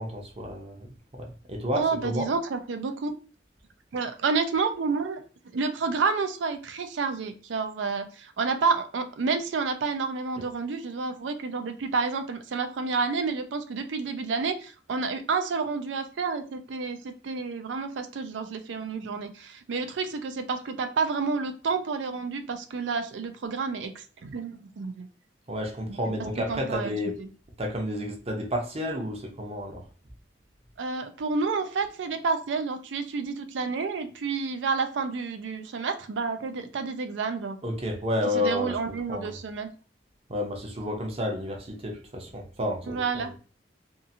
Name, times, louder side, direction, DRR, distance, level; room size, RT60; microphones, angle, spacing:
voice 1, 0.0-2.3 10.4-10.5 25.5-27.2 27.6-29.8 37.6-39.4 40.3-43.3, left 1 dB, 35° right, 0.6 m, -31 dB
voice 2, 1.8-3.1 3.9-5.2 5.5-25.1 25.9-26.0 26.5-26.9 27.2-27.3 30.8-37.6 38.4-39.7 42.9-43.3, right 4 dB, 85° right, 0.4 m, -29 dB
2.7 x 2.4 x 2.7 m
head